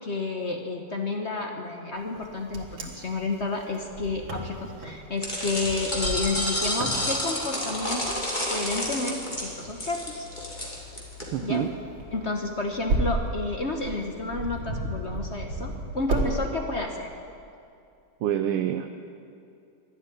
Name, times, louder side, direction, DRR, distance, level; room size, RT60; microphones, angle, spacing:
voice 1, 0.0-10.3 11.4-11.7 12.1-17.1, left 3 dB, 45° left, 3 dB, 0.9 m, -31 dB
Wind, 2.1-16.3, right 2 dB, 70° right, 2.4 m, -34 dB
sound 1, 5.2-11.2, left 1 dB, 20° left, 2.6 m, -30 dB
voice 2, 11.3-11.7 18.2-18.9, right 10 dB, 85° right, 6 dB, 1.6 m, -26 dB
12.5 x 11.5 x 10.0 m, 2.5 s
omnidirectional pair, 2.4 m